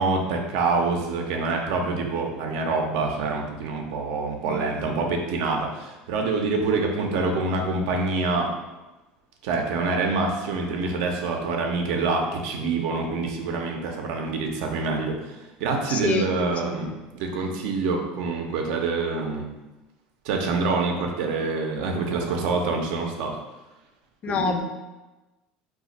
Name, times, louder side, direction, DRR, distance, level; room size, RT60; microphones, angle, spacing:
voice 1, 0.0-8.5 9.4-16.9 17.2-19.5 20.2-23.4 24.3-24.6, right 3 dB, 75° right, 2 dB, 0.5 m, -26 dB
voice 2, 15.9-17.0 24.2-24.6, left 4 dB, 40° left, 5 dB, 0.4 m, -28 dB
2.5 x 2.3 x 4.0 m, 1.1 s
supercardioid pair, 100°, 4 cm